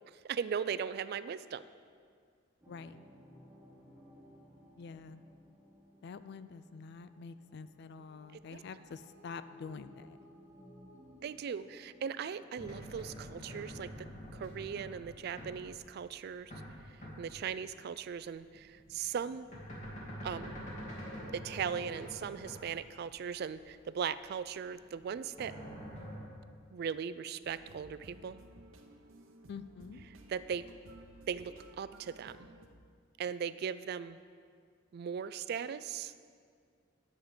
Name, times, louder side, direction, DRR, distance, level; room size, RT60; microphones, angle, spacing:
voice 1, 0.2-1.6 8.3-8.6 11.2-14.1 14.3-16.5 17.2-19.5 20.2-20.6 21.3-25.5 26.7-28.4 30.3-30.6 31.3-32.4 33.2-34.2 34.9-36.1, right 7 dB, 55° right, 15 dB, 0.3 m, -38 dB
sound 1, 2.6-15.2, left 1 dB, 10° right, 1.3 m, -59 dB
voice 2, 2.7-3.0 4.8-5.2 6.0-10.2 29.5-30.1, left 5 dB, 55° left, 13 dB, 0.4 m, -47 dB
sound 2, 12.6-16.7 17.0-17.5 18.3-24.3 24.7-26.2, equal, 35° left, 2.1 m, -46 dB
sound 3, 27.4-32.7, right 2 dB, 85° right, 0.8 m, -56 dB
9.5 x 7.4 x 5.0 m, 2.1 s
head